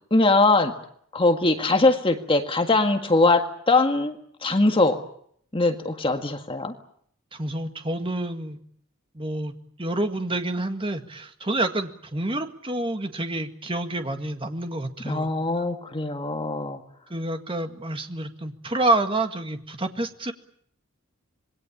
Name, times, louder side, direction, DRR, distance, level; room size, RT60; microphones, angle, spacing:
voice 1, 0.1-0.7 1.1-4.2 4.4-5.0 5.5-6.7 15.1-16.8, left 2 dB, 25° left, 5 dB, 1.8 m, -21 dB
voice 2, 7.3-8.6 9.1-9.5 9.8-15.3 15.6-15.7 17.1-20.3, right 2 dB, 25° right, 6 dB, 1.9 m, -28 dB
26.5 x 21.0 x 8.6 m, 0.66 s
head